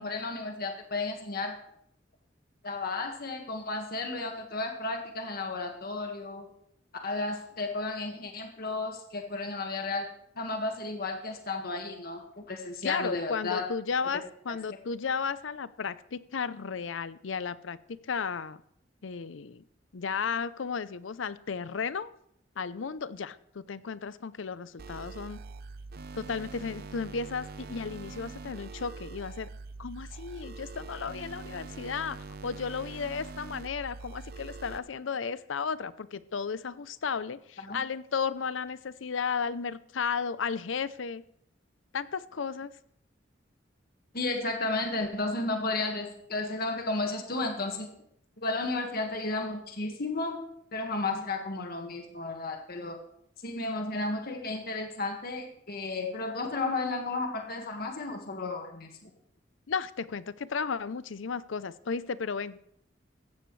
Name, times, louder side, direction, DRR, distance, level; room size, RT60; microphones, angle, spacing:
voice 1, 0.0-1.6 2.6-6.5 7.0-10.1 10.4-13.7 14.5-14.6 37.7-37.8 44.1-47.9 48.4-53.0 53.4-59.1, left 3 dB, 55° left, 3 dB, 1.8 m, -33 dB
voice 2, 12.8-18.6 19.0-19.6 19.9-22.1 22.6-25.4 26.1-29.5 29.8-41.2 41.9-42.7 59.7-62.6, left 5 dB, 85° left, 16 dB, 0.6 m, -34 dB
sound 1, 24.8-34.8, right 3 dB, 55° right, 0.7 m, -43 dB
16.0 x 14.0 x 3.3 m, 0.70 s
head